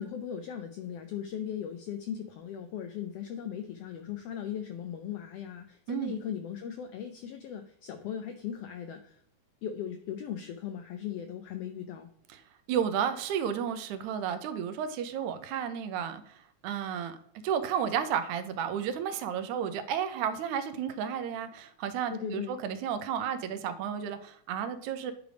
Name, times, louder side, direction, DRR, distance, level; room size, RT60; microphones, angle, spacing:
voice 1, 0.0-9.2 9.6-12.1 22.1-22.6, left 9 dB, 85° left, 7 dB, 1.3 m, -38 dB
voice 2, 5.9-6.2 12.7-16.3 16.6-17.2 17.4-25.1, right 8 dB, 85° right, 10 dB, 2.1 m, -32 dB
9.4 x 3.4 x 5.1 m, 0.68 s
omnidirectional pair, 3.4 m